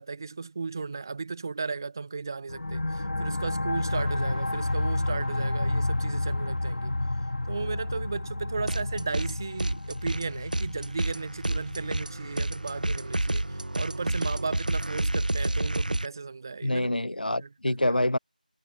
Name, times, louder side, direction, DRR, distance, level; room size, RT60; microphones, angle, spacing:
voice 1, 0.0-6.9 7.5-16.9 17.3-17.8, right 4 dB, 25° right, 4.3 m, -35 dB
sound 1, 2.5-13.8, left 2 dB, 60° left, 2.8 m, -31 dB
sound 2, 8.7-9.3 9.6-16.1, right 1 dB, 65° right, 5.9 m, -29 dB
voice 2, 16.6-18.2, left 1 dB, 90° left, 1.8 m, -26 dB
figure-of-eight pair, 175°, 5 cm